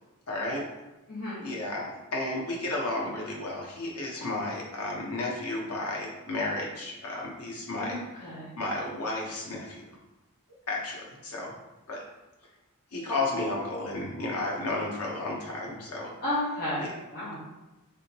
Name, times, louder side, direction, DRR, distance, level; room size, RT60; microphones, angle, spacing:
voice 1, 0.3-0.6 1.4-8.0 8.6-9.8 10.7-11.5 11.9-12.0 12.9-16.1 16.8-16.9, left 2 dB, 85° left, -2 dB, 1.0 m, -32 dB
voice 2, 1.1-1.4 7.8-8.5 16.2-16.8 17.1-17.3, left 1 dB, 45° left, -10 dB, 1.0 m, -32 dB
3.6 x 3.3 x 2.9 m, 1.1 s
head